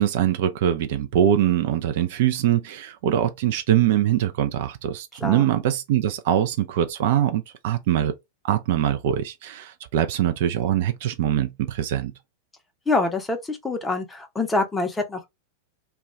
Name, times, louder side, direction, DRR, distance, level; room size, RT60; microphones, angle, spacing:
voice 1, 0.0-8.2 8.4-12.1, right 11 dB, 50° right, 0.3 m, -23 dB
voice 2, 12.9-15.3, left 3 dB, 10° left, 0.6 m, -25 dB
2.2 x 2.2 x 3.0 m
figure-of-eight pair, 90°, 0 cm